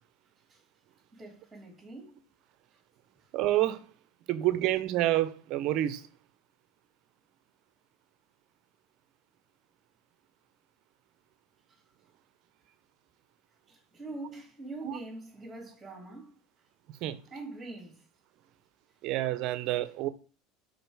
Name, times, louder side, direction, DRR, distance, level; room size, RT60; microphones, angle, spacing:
voice 1, 1.1-2.2 11.7-11.8 13.7-16.4 17.3-18.1, right 2 dB, 15° right, 2.6 m, -44 dB
voice 2, 3.3-3.8 4.3-6.1 14.8-15.0 17.0-17.2 19.0-20.1, right 14 dB, 55° right, 0.7 m, -28 dB
5.2 x 3.9 x 4.8 m
supercardioid pair, 120°, 0 cm